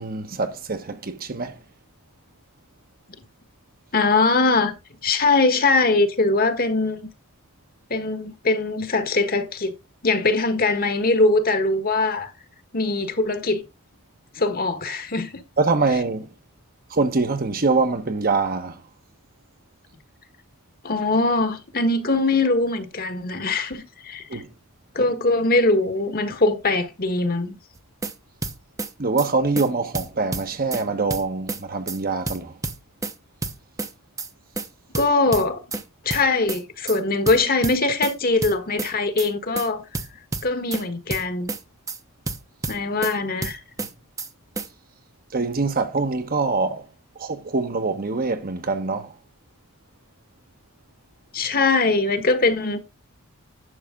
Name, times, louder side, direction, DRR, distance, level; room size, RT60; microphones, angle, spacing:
voice 1, 0.0-1.6 15.6-16.3 16.9-18.8 24.3-24.5 29.0-32.5 45.3-46.8 47.2-49.1, right 3 dB, 45° right, 1.0 m, -24 dB
voice 2, 3.9-4.7 5.0-7.1 7.9-9.7 10.0-12.3 12.7-13.6 14.3-15.3 20.8-24.4 24.9-27.6 34.9-35.6 36.0-39.8 40.4-41.5 42.7-43.6 51.3-52.8, left 3 dB, 45° left, 1.3 m, -21 dB
sound 1, 27.8-28.1 28.4-28.9 29.2-29.3 29.6-29.7 29.9-30.8 31.1-31.6 31.9-32.0 32.3-33.1 33.4-33.9 34.2-34.3 34.6-34.7 34.9-35.8 36.1-36.6 36.9-37.0 37.3-38.1 38.4-38.9 39.2-39.3 39.6-39.7 39.9-40.8 41.1-41.6 41.9-42.0 42.3-43.1 43.4-43.9 44.2-44.3 44.6-44.7, right 3 dB, 15° right, 0.8 m, -29 dB
11.0 x 6.4 x 3.7 m
head